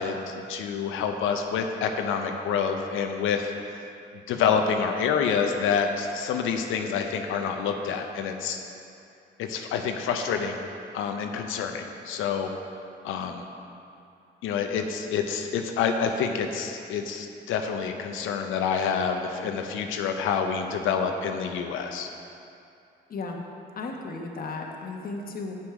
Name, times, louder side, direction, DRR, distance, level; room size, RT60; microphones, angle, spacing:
voice 1, 0.0-3.5 4.3-8.6 9.4-10.6 10.9-12.5 13.0-13.4 14.4-22.1, left 6 dB, 85° left, 5 dB, 0.6 m, -27 dB
voice 2, 23.8-25.5, left 3 dB, 45° left, 1 dB, 1.1 m, -35 dB
8.3 x 6.2 x 4.8 m, 2.6 s
cardioid pair, 90°, 20 cm